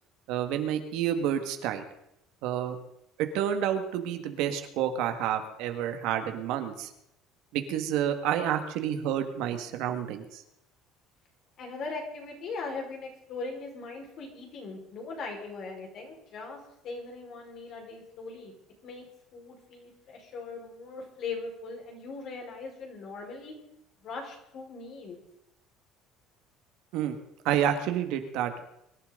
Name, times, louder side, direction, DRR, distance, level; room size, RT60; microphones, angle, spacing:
voice 1, 0.3-1.8 2.4-2.8 3.2-6.9 7.5-10.4 26.9-27.2 27.4-28.6, right 10 dB, 75° right, 7 dB, 1.8 m, -29 dB
voice 2, 11.6-16.6 16.8-18.5 18.8-19.1 19.3-23.5 24.0-25.2, left 4 dB, 50° left, 0 dB, 4.9 m, -40 dB
24.0 x 11.5 x 3.9 m, 0.79 s
cardioid pair, 130°, 0 cm